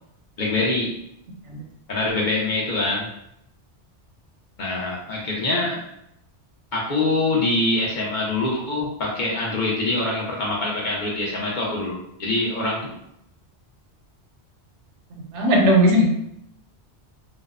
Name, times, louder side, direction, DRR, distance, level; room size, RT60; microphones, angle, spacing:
voice 1, 0.4-1.0 1.9-3.1 4.6-5.8 6.7-12.8, left 2 dB, 50° left, -4 dB, 0.6 m, -24 dB
voice 2, 15.3-16.0, equal, 85° right, 0 dB, 1.0 m, -17 dB
2.6 x 2.1 x 2.3 m, 0.78 s
omnidirectional pair, 1.2 m